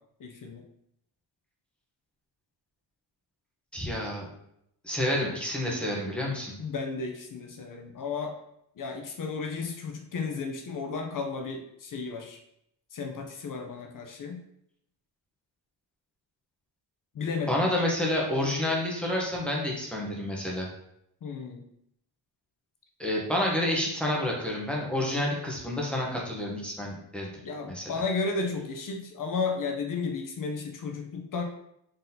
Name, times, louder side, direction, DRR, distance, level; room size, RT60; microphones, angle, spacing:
voice 1, 0.2-0.7 6.6-8.3 8.8-12.4 12.9-14.4 17.1-17.6 21.2-21.6 27.4-31.4, left 4 dB, 40° left, 3 dB, 0.5 m, -33 dB
voice 2, 3.7-4.3 4.8-6.5 17.5-20.7 23.0-27.3 27.7-27.9, left 1 dB, ahead, -3 dB, 0.7 m, -29 dB
3.9 x 3.9 x 2.7 m, 0.76 s
wide cardioid pair, 165°, 49 cm